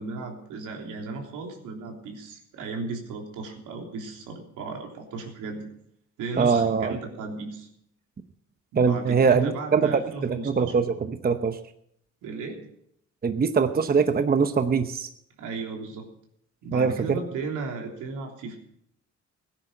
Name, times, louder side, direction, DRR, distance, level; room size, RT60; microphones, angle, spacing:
voice 1, 0.0-5.7 6.2-7.7 8.7-10.7 12.2-12.7 15.4-16.1 16.6-18.6, right 4 dB, 85° right, 1 dB, 3.5 m, -35 dB
voice 2, 6.4-7.0 8.8-11.6 13.2-15.1 16.7-17.2, right 5 dB, 30° right, 9 dB, 0.9 m, -23 dB
16.5 x 9.9 x 6.6 m, 0.72 s
cardioid pair, 90°, 30 cm